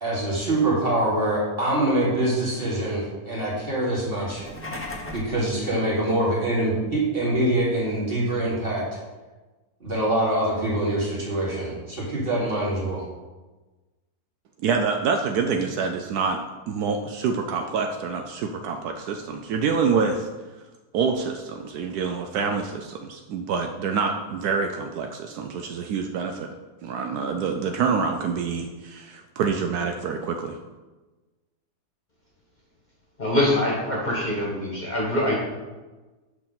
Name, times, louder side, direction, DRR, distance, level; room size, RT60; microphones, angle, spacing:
voice 1, 0.0-4.4 5.1-8.8 9.8-13.0, right 1 dB, 35° right, -5 dB, 2.2 m, -24 dB
sound 1, 4.2-5.4, left 1 dB, 10° left, 0.6 m, -35 dB
voice 2, 14.6-20.3 20.9-26.5 26.8-30.6, right 5 dB, 75° right, 4 dB, 1.1 m, -26 dB
voice 3, 33.2-35.4, left 1 dB, 30° left, -3 dB, 1.4 m, -24 dB
6.7 x 5.9 x 4.0 m, 1.2 s
omnidirectional pair, 1.7 m